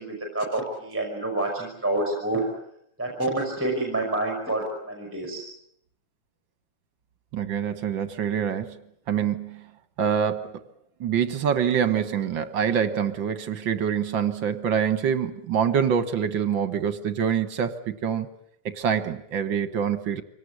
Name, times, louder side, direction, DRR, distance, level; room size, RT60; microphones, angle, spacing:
voice 1, 0.0-2.5 3.0-5.4, right 2 dB, 5° right, 1 dB, 5.5 m, -28 dB
voice 2, 7.3-8.8 9.1-9.7 10.0-10.6 11.0-18.3 18.7-20.2, right 8 dB, 65° right, 11 dB, 1.9 m, -25 dB
25.0 x 18.0 x 9.7 m, 0.73 s
omnidirectional pair, 2.4 m